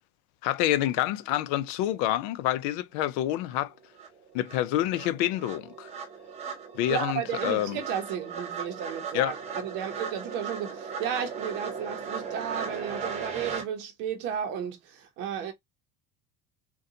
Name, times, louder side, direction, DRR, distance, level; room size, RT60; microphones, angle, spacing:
voice 1, 0.4-3.7 4.3-5.9 6.7-7.8 9.1-9.3, left 13 dB, 80° left, 0.5 m, -27 dB
sound 1, 3.5-3.6 4.0-13.6, right 5 dB, 30° right, 0.8 m, -37 dB
voice 2, 6.9-15.5, right 8 dB, 60° right, 0.7 m, -33 dB
3.7 x 2.2 x 2.7 m
cardioid pair, 140°, 21 cm